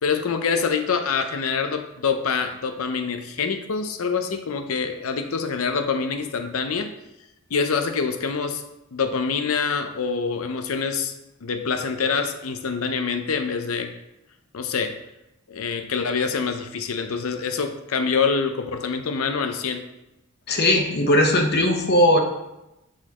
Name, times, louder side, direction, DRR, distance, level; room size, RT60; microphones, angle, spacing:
voice 1, 0.0-6.9 7.5-8.6 8.9-11.1 11.4-13.9 14.5-15.0 15.5-19.8, left 5 dB, 70° left, 7 dB, 0.6 m, -25 dB
voice 2, 20.5-22.2, left 1 dB, 50° left, 3 dB, 0.9 m, -18 dB
8.2 x 4.3 x 3.0 m, 0.92 s
head